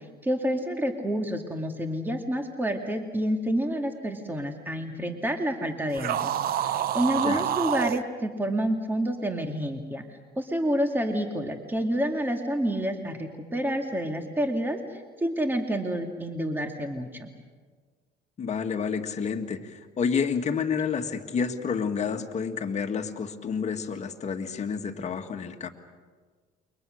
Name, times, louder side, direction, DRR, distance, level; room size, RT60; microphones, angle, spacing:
voice 1, 0.2-17.3, equal, 10° right, 4 dB, 2.2 m, -29 dB
sound 1, 5.9-8.0, right 10 dB, 60° right, 0.8 m, -27 dB
voice 2, 18.4-25.7, left 6 dB, 40° left, 5 dB, 1.9 m, -29 dB
29.0 x 24.0 x 6.5 m, 1.5 s
cardioid pair, 110°, 17 cm